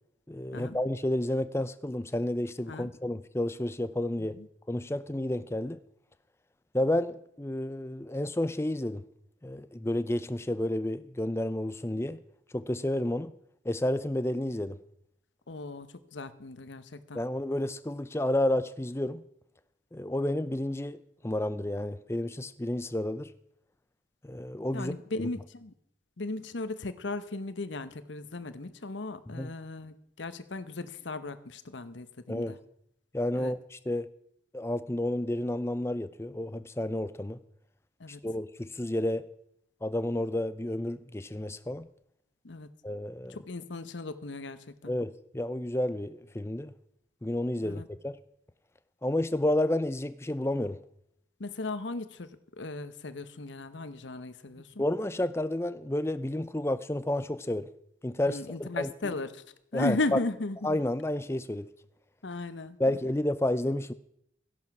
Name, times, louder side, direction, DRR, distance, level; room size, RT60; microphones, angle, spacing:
voice 1, 0.3-4.4 4.7-5.8 6.7-9.0 9.4-12.2 12.5-13.3 13.6-14.8 17.1-19.2 19.9-21.0 21.2-23.3 24.2-25.0 29.3-29.5 32.3-32.6 33.1-34.1 34.5-37.4 38.2-39.2 39.8-41.9 42.8-43.4 44.9-46.7 47.2-48.2 49.0-50.8 54.8-57.7 58.0-58.9 59.7-60.2 60.6-61.7 62.8-63.9, left 1 dB, 15° left, 0.5 m, -30 dB
voice 2, 15.5-17.2 24.7-25.7 26.2-32.6 33.3-33.5 38.0-38.2 42.4-42.7 43.3-44.9 47.6-47.9 51.4-52.3 52.6-54.8 58.3-59.4 59.7-60.8 62.2-63.0, left 2 dB, 85° left, 1.0 m, -36 dB
15.0 x 11.0 x 5.9 m
head